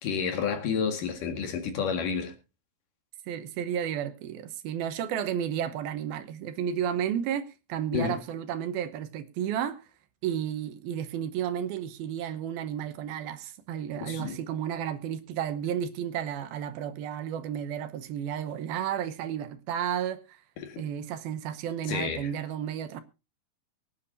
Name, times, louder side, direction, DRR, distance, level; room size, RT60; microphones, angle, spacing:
voice 1, 0.0-2.3 7.9-8.2 14.0-14.4 20.6-20.8 21.9-22.3, left 6 dB, 60° left, 3.3 m, -30 dB
voice 2, 3.3-9.8 10.2-20.4 20.8-23.0, right 9 dB, 80° right, 2.8 m, -32 dB
24.0 x 9.6 x 2.7 m
omnidirectional pair, 4.4 m